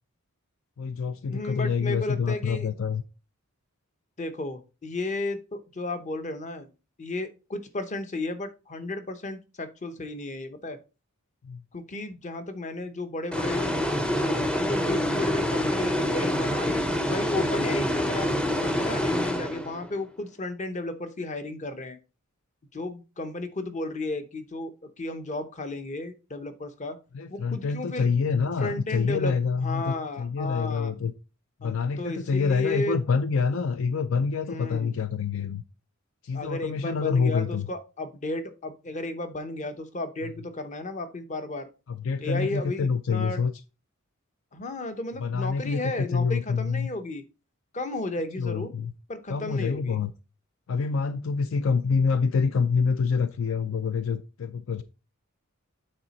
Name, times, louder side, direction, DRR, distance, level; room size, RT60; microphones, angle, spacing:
voice 1, 0.8-3.0 11.4-11.6 27.1-31.1 31.6-35.6 36.2-37.7 41.9-43.5 45.2-46.9 48.4-48.9 49.3-50.1 50.7-54.8, left 5 dB, 65° left, 0.4 m, -26 dB
voice 2, 1.3-2.7 4.2-6.7 7.0-10.8 11.7-13.8 14.2-22.0 22.7-27.0 27.3-28.1 28.6-30.9 31.6-33.0 34.4-34.9 36.3-41.7 42.2-43.4 44.5-47.2 47.7-48.7 49.1-50.0, left 2 dB, 35° left, 0.9 m, -34 dB
sound 1, 13.3-20.0, left 1 dB, 5° left, 0.5 m, -26 dB
8.9 x 4.1 x 4.1 m
head